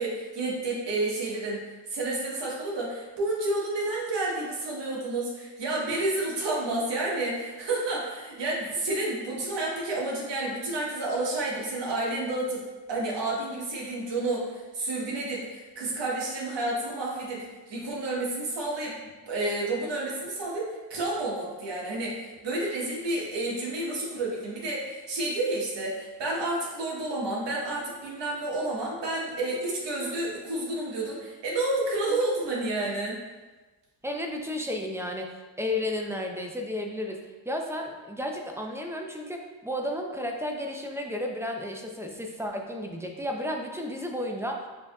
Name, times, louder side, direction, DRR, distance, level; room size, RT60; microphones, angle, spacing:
voice 1, 0.0-1.6 1.9-12.6 12.9-18.9 19.3-20.6 20.9-33.2, right 2 dB, 80° right, -4 dB, 1.2 m, -30 dB
voice 2, 34.0-37.2 37.5-44.7, left 1 dB, 5° right, 2 dB, 0.5 m, -33 dB
6.5 x 2.7 x 2.3 m, 1.2 s
cardioid pair, 80°, 42 cm